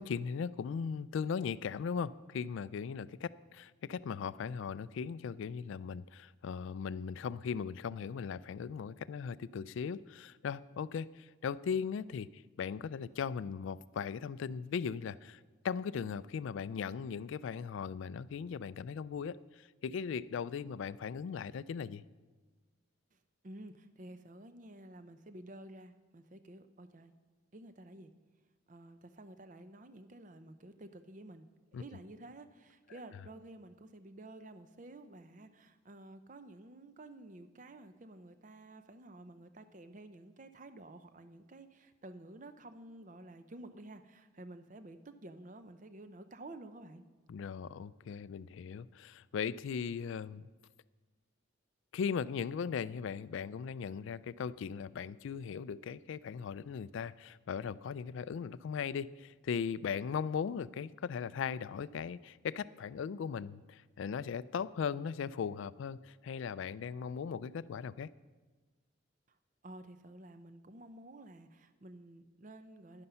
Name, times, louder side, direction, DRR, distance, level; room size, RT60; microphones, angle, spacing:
voice 1, 0.0-15.4 15.6-22.0 31.7-31.8 47.3-50.5 51.9-68.1, left 6 dB, 70° left, 18 dB, 0.3 m, -38 dB
voice 2, 23.1-27.1 27.5-28.1 28.7-47.1 69.6-73.1, right 1 dB, 40° right, 10 dB, 0.6 m, -52 dB
10.5 x 9.7 x 5.6 m, 1.3 s
head